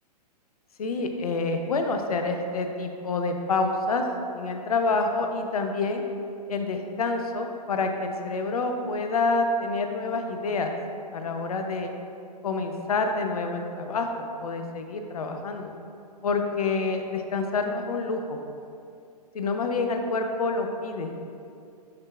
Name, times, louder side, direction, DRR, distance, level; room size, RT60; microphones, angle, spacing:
voice 1, 0.8-4.0 4.3-6.0 6.5-10.8 11.1-11.9 12.4-14.1 14.4-15.7 16.2-18.4 19.3-21.1, left 3 dB, 60° left, 5 dB, 0.7 m, -27 dB
10.5 x 4.5 x 2.4 m, 2.5 s
figure-of-eight pair, 115°, 21 cm